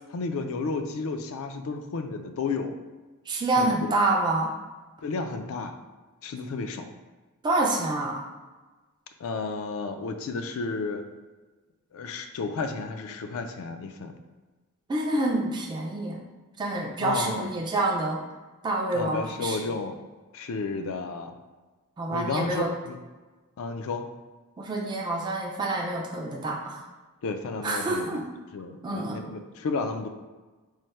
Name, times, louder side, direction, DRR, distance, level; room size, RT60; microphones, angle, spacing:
voice 1, 0.1-2.8 3.6-3.9 5.0-5.8 6.2-6.9 9.2-11.0 11.9-14.1 17.0-17.5 18.9-20.0 20.3-21.3 22.1-23.0 23.6-24.1 27.2-28.2 28.5-30.1, left 4 dB, 70° left, 7 dB, 0.4 m, -32 dB
voice 2, 3.3-4.5 7.4-8.3 14.9-16.3 16.6-18.2 18.6-19.6 22.0-22.7 24.6-26.8 27.6-28.2 28.8-29.2, right 2 dB, 20° right, -1 dB, 0.3 m, -27 dB
3.2 x 2.0 x 4.2 m, 1.3 s
head